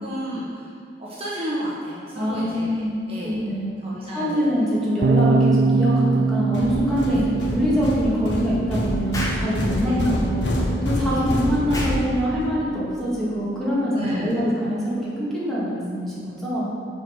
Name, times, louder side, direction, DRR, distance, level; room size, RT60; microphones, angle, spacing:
voice 1, 0.0-3.4 3.8-4.5 7.1-7.2 9.8-10.0 11.0-11.3 13.9-14.4, equal, 35° right, -7 dB, 1.1 m, -32 dB
voice 2, 2.1-3.8 4.1-16.7, equal, 5° left, -9 dB, 2.0 m, -24 dB
sound 1, 5.0-11.3, right 4 dB, 55° right, 0.3 m, -24 dB
sound 2, 6.5-12.5, left 1 dB, 85° left, 1.1 m, -27 dB
Explosion, 9.1-9.5 11.7-12.0, left 1 dB, 20° left, 1.0 m, -30 dB
6.9 x 4.7 x 6.4 m, 2.3 s
head